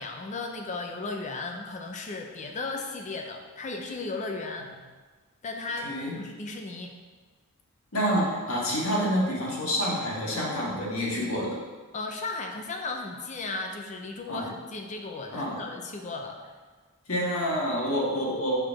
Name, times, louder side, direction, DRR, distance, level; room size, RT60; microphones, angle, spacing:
voice 1, 0.0-4.7 5.4-7.0 11.9-16.5, left 3 dB, 35° left, 3 dB, 0.5 m, -35 dB
voice 2, 5.8-6.1 7.9-11.6 14.3-14.5 15.3-15.6 17.1-18.6, equal, 70° left, -4 dB, 1.8 m, -28 dB
4.8 x 4.5 x 5.8 m, 1.4 s
head